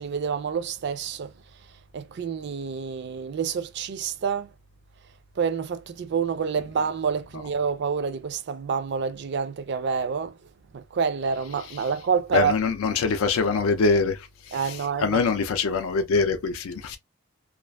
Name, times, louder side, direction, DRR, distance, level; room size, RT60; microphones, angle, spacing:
voice 1, 0.0-1.3 1.9-4.5 5.4-10.3 10.7-12.6 14.5-15.2, right 6 dB, 55° right, 0.3 m, -28 dB
voice 2, 12.3-17.0, left 4 dB, 85° left, 0.4 m, -24 dB
2.4 x 2.4 x 2.2 m
head